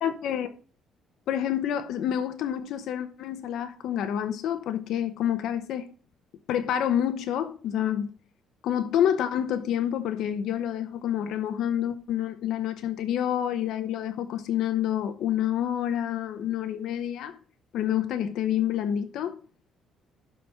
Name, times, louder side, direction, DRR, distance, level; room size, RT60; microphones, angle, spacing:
voice 1, 0.0-0.5 1.3-5.9 6.5-8.1 8.6-17.3 17.7-19.3, left 10 dB, 60° left, 0.8 m, -28 dB
12.0 x 4.3 x 4.4 m
cardioid pair, 165°, 0 cm